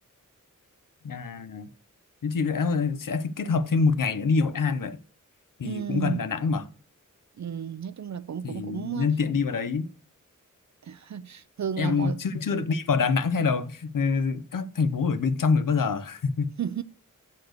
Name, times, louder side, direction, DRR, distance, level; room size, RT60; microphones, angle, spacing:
voice 1, 1.0-1.7 2.2-5.0 5.6-6.7 8.4-9.9 11.8-16.5, left 5 dB, 80° left, 0.8 m, -26 dB
voice 2, 5.6-6.2 7.4-9.1 10.8-12.2 16.6-16.8, right 8 dB, 60° right, 0.5 m, -33 dB
8.1 x 4.2 x 6.5 m
wide cardioid pair, 95°, 32 cm